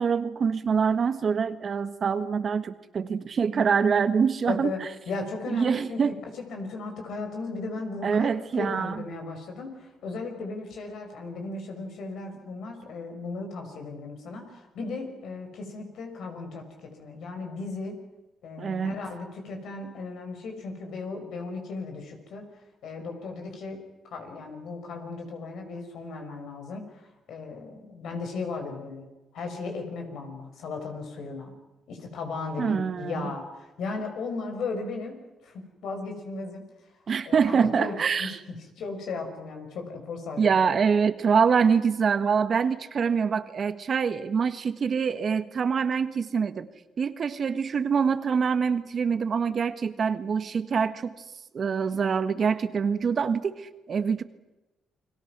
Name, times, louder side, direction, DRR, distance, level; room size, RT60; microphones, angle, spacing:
voice 1, 0.0-4.7 5.5-6.1 8.0-9.0 18.6-19.0 32.6-33.2 37.1-38.4 40.4-46.7 47.0-51.1 51.5-54.2, right 6 dB, 50° right, 11 dB, 1.5 m, -25 dB
voice 2, 4.5-6.0 6.3-8.3 8.5-18.0 18.4-22.5 22.8-23.8 24.0-31.5 31.9-35.2 35.4-36.6 37.3-40.4, left 3 dB, 75° left, 4 dB, 6.0 m, -36 dB
29.5 x 22.0 x 6.1 m, 1.0 s
cardioid pair, 90°, 0 cm